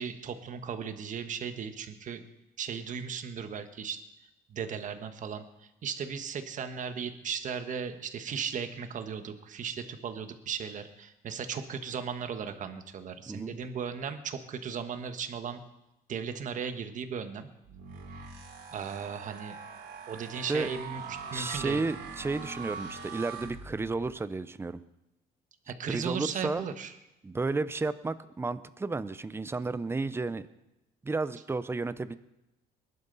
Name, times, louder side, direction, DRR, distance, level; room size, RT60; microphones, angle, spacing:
voice 1, 0.0-2.2 2.6-4.0 4.5-15.6 16.1-17.5 18.7-19.6 20.1-21.0 21.3-21.8 25.7-26.9, right 6 dB, 50° right, 8 dB, 1.4 m, -36 dB
sound 1, 17.6-24.1, right 5 dB, 70° right, 3.2 m, -42 dB
voice 2, 21.3-24.8 25.9-26.7 27.2-30.4 31.0-32.1, right 3 dB, 15° right, 14 dB, 0.6 m, -32 dB
21.0 x 11.5 x 4.1 m, 0.93 s
cardioid pair, 110°, 17 cm